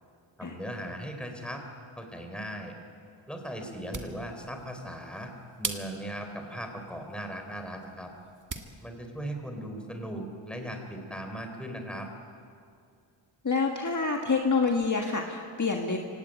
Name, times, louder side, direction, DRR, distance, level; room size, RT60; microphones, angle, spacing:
voice 1, 0.4-1.6 2.0-2.7 3.3-5.3 5.6-8.1 8.8-12.1, right 1 dB, ahead, 3 dB, 3.9 m, -38 dB
sound 1, 3.7-8.8, right 4 dB, 40° right, 1.7 m, -42 dB
voice 2, 13.4-16.0, left 4 dB, 35° left, 2 dB, 1.6 m, -27 dB
24.5 x 17.5 x 9.1 m, 2.3 s
wide cardioid pair, 100°, 49 cm